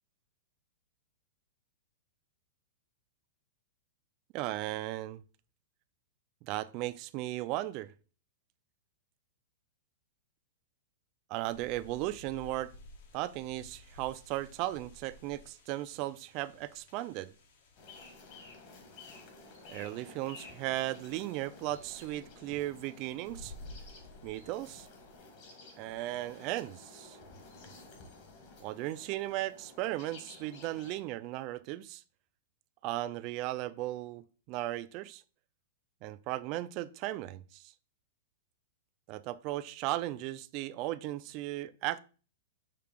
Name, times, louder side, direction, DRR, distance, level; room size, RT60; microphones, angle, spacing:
voice 1, 4.3-5.2 6.4-7.9 11.3-12.7 13.1-17.3 19.7-23.5 24.2-24.9 25.8-27.2 28.6-32.0 32.8-35.2 36.0-37.7 39.1-42.0, right 16 dB, 35° right, 0.4 m, -36 dB
sound 1, 11.5-25.1, left 2 dB, 60° left, 1.4 m, -55 dB
sound 2, 17.8-31.0, left 3 dB, 40° left, 1.7 m, -53 dB
6.6 x 2.8 x 5.2 m
supercardioid pair, 155°, 0 cm